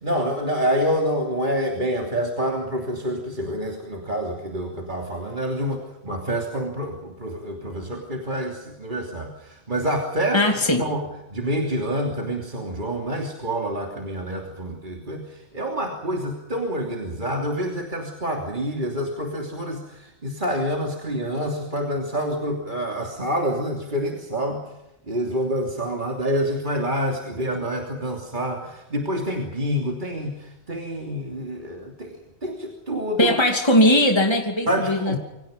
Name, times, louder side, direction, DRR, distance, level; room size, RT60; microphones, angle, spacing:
voice 1, 0.0-10.4 10.8-11.0 11.3-24.6 25.1-32.2 32.4-33.4 34.7-35.2, equal, 45° right, 1 dB, 3.3 m, -27 dB
voice 2, 10.3-10.8 33.2-35.2, left 1 dB, 25° left, 3 dB, 2.7 m, -19 dB
28.0 x 25.0 x 5.4 m, 0.89 s
omnidirectional pair, 1.1 m